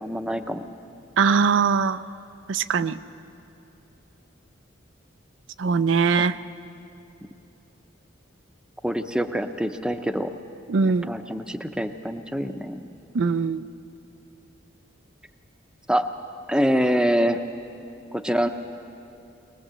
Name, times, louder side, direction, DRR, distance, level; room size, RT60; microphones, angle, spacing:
voice 1, 0.0-0.6 8.8-10.3 10.8-12.9 15.9-16.1 16.5-17.4 18.1-18.5, equal, 5° right, 7 dB, 0.7 m, -25 dB
voice 2, 1.2-2.0 2.5-3.0 5.6-6.4 10.7-11.1 13.1-13.6, right 5 dB, 70° right, 12 dB, 0.5 m, -21 dB
23.0 x 20.0 x 7.6 m, 2.9 s
head